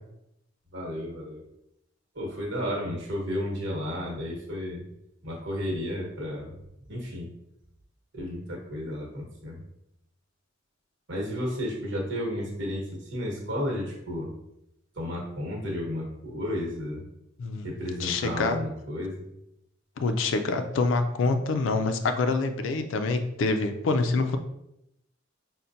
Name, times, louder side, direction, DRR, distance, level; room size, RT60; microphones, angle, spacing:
voice 1, 0.7-1.4 2.1-4.8 5.2-6.5 6.9-7.3 8.1-9.6 11.1-14.3 14.9-17.0 17.6-19.3, left 1 dB, 65° right, -2 dB, 1.2 m, -32 dB
voice 2, 17.4-17.7 18.0-18.6 20.0-24.4, left 3 dB, 70° left, 7 dB, 0.4 m, -26 dB
5.5 x 2.1 x 2.6 m, 0.82 s
head